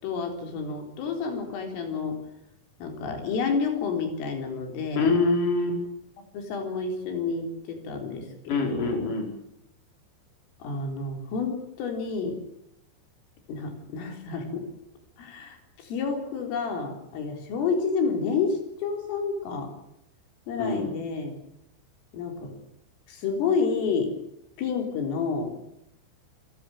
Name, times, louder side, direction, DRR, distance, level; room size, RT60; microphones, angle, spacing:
voice 1, 0.0-2.2 2.8-5.1 6.3-9.1 10.6-12.4 13.5-14.7 15.2-19.7 20.5-21.3 22.1-22.5 23.1-24.1 24.6-25.6, left 5 dB, 90° left, 4 dB, 6.6 m, -29 dB
voice 2, 5.0-5.8 8.5-9.3 20.6-20.9, left 3 dB, 40° left, 2 dB, 6.3 m, -24 dB
28.5 x 16.0 x 9.1 m, 0.80 s
omnidirectional pair, 5.6 m